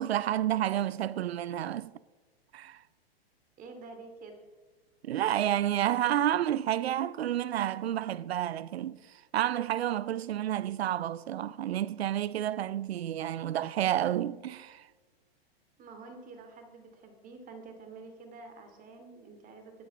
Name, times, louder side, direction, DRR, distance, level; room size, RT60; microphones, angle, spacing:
voice 1, 0.0-1.9 2.5-2.8 5.0-9.0 9.3-14.9, right 11 dB, 80° right, 0.6 m, -30 dB
voice 2, 3.6-4.4 15.8-19.7, right 3 dB, 25° right, 2.5 m, -48 dB
13.0 x 9.2 x 6.1 m
hypercardioid pair, 120°, 31 cm